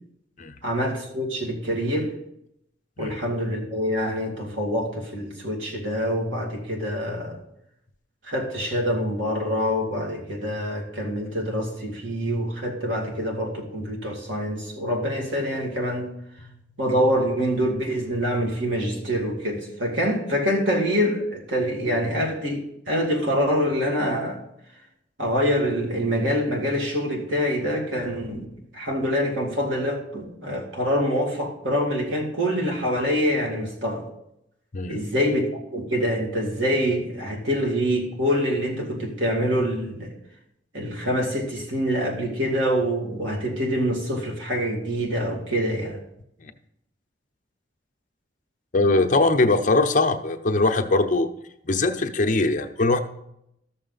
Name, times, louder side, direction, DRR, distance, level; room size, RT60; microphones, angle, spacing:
voice 1, 0.6-2.1 3.0-7.4 8.2-16.1 16.8-24.4 25.2-28.5 28.7-34.0 34.9-40.1 40.7-46.0, equal, 85° right, 0 dB, 2.2 m, -25 dB
voice 2, 48.7-51.3 51.6-53.0, left 2 dB, 45° left, 7 dB, 0.6 m, -21 dB
13.5 x 6.4 x 3.9 m, 0.80 s
head